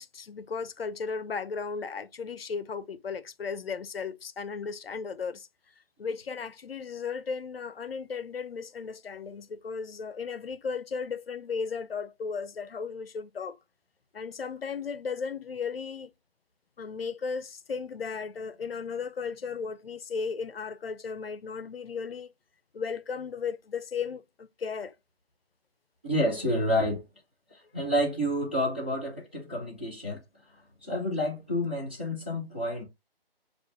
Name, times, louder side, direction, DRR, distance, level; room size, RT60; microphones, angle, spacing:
voice 1, 0.0-5.5 6.0-13.6 14.1-16.1 16.8-22.3 22.7-25.0, left 5 dB, 70° left, 0.5 m, -35 dB
voice 2, 26.0-27.0 27.7-30.2 30.8-32.8, equal, 10° right, 0.4 m, -29 dB
6.3 x 2.4 x 2.3 m
figure-of-eight pair, 150°, 30 cm